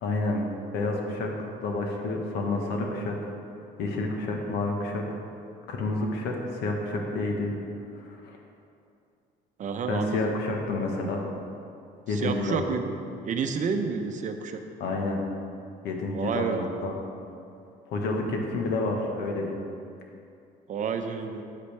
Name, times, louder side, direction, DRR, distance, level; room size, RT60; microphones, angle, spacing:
voice 1, 0.0-0.5 0.7-3.3 3.8-5.0 5.7-7.5 7.9-8.4 9.9-11.2 12.1-12.6 14.8-15.2 15.8-16.9 17.9-19.6, left 2 dB, 85° left, 1 dB, 1.3 m, -29 dB
voice 2, 9.6-10.3 12.1-12.9 13.2-14.6 16.1-16.7 20.7-21.4, right 5 dB, 50° right, 6 dB, 0.7 m, -30 dB
8.4 x 8.2 x 3.4 m, 2.5 s
cardioid pair, 110°, 17 cm